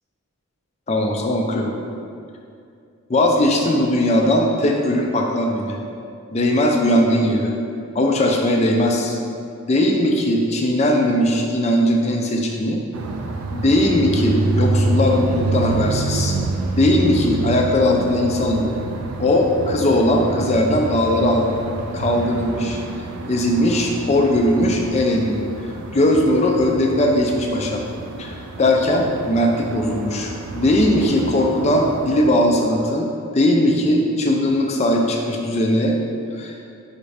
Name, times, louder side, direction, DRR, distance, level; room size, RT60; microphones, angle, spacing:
voice 1, 0.9-1.7 3.1-5.8 6.3-7.5 7.9-9.2 9.7-12.8 13.5-16.4 16.7-18.7 19.2-21.5 21.9-22.8 23.3-27.8 28.2-36.0 36.4-36.6, left 1 dB, 30° left, 1 dB, 0.4 m, -19 dB
sound 1, 12.9-32.3, right 3 dB, 90° right, 0.4 m, -27 dB
5.9 x 2.6 x 3.3 m, 2.4 s
head